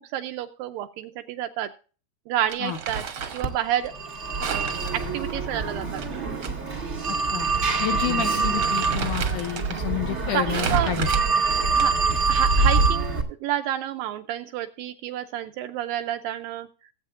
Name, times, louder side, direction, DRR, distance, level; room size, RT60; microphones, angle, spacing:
voice 1, 0.1-1.7 2.3-3.0 3.3-3.9 4.4-6.0 10.3-10.9 11.8-11.9 12.3-16.7, right 12 dB, 80° right, 8 dB, 2.1 m, -29 dB
Crumpling crinkling, 2.5-3.5 4.4-6.5 6.8-6.9 7.7-7.9 8.3-9.8 10.5-12.1, right 5 dB, 60° right, 1.4 m, -31 dB
Telephone, 3.4-13.2, right 4 dB, 35° right, 1.1 m, -25 dB
voice 2, 7.1-7.5 7.8-11.1, left 11 dB, 70° left, 6 dB, 2.0 m, -30 dB
18.5 x 8.3 x 2.5 m, 0.37 s
omnidirectional pair, 4.5 m